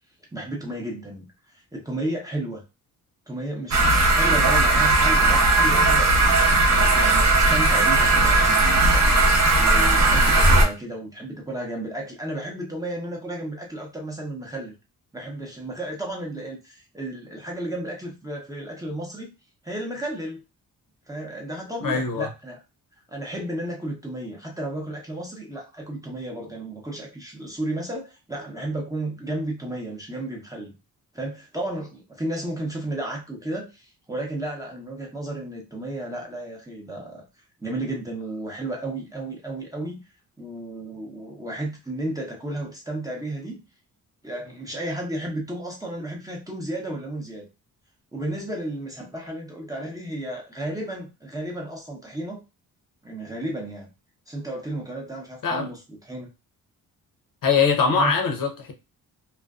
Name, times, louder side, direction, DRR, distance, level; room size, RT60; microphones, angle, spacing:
voice 1, 0.3-1.3 1.5-2.6 3.3-6.3 6.7-9.2 9.6-14.8 15.1-19.3 19.6-20.4 21.1-22.6 23.1-30.7 31.1-37.2 37.6-40.0 40.4-43.6 44.2-47.5 48.1-52.4 53.0-53.9 54.3-56.3 57.9-58.1, right 1 dB, 10° right, 0.7 m, -33 dB
sound 1, 3.7-10.7, right 2 dB, 45° right, 0.7 m, -18 dB
voice 2, 21.8-22.3 55.4-55.7 57.4-58.7, left 5 dB, 60° left, 0.7 m, -22 dB
2.4 x 2.2 x 2.3 m
cardioid pair, 100°, 37 cm